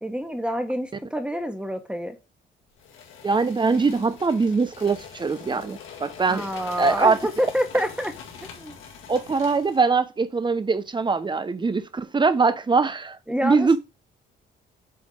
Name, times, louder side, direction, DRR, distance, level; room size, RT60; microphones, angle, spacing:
voice 1, 0.0-2.2 6.3-8.1 8.4-8.8 13.3-13.8, equal, 5° right, 1.6 m, -27 dB
sound 1, 2.8-9.9, left 7 dB, 85° left, 1.8 m, -43 dB
voice 2, 3.2-6.5 6.8-7.2 9.1-13.8, right 4 dB, 25° right, 0.8 m, -22 dB
7.8 x 3.5 x 5.0 m
cardioid pair, 90°, 20 cm